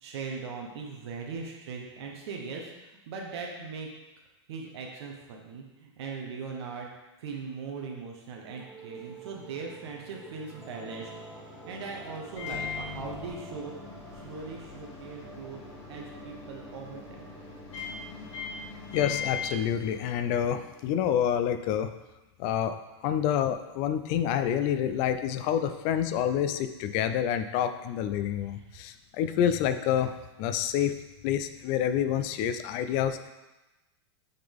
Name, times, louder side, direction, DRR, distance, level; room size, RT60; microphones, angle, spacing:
voice 1, 0.0-2.7 3.1-3.9 4.5-6.9 7.2-11.1 11.7-13.7 14.2-15.6 15.9-17.3, right 5 dB, 65° right, 0 dB, 1.1 m, -39 dB
sound 1, 8.4-21.4, right 1 dB, ahead, 1.2 m, -48 dB
Microwave oven, 12.3-20.5, left 6 dB, 80° left, 2.1 m, -40 dB
voice 2, 18.9-21.9 22.4-22.7 23.0-30.1 30.4-31.0 31.2-33.3, left 9 dB, 40° left, 10 dB, 0.4 m, -28 dB
7.8 x 3.9 x 3.5 m, 1.1 s
supercardioid pair, 140°, 15 cm